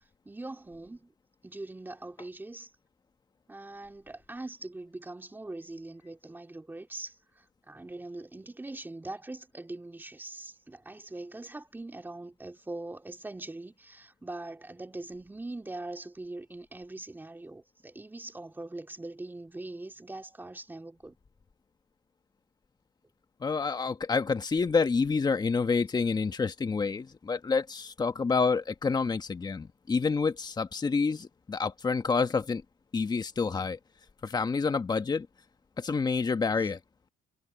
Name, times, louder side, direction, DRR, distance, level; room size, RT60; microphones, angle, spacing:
voice 1, 0.2-1.1 1.4-2.7 3.5-21.2 36.6-36.7, right 2 dB, 10° right, 3.2 m, -42 dB
voice 2, 23.4-32.6 32.9-33.8 34.2-35.3 35.8-36.8, left 4 dB, 25° left, 1.5 m, -28 dB
cardioid pair, 110°, 17 cm